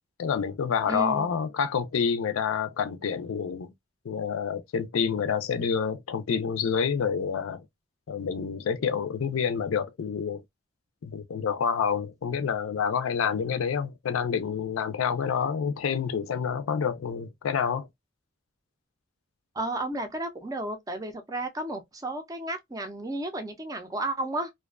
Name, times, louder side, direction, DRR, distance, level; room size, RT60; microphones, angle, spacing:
voice 1, 0.2-3.7 4.0-7.6 8.1-10.4 11.0-17.9, left 6 dB, 80° left, 0.4 m, -28 dB
voice 2, 0.9-1.3 19.5-24.5, right 2 dB, 15° right, 0.4 m, -33 dB
2.4 x 2.2 x 2.3 m
head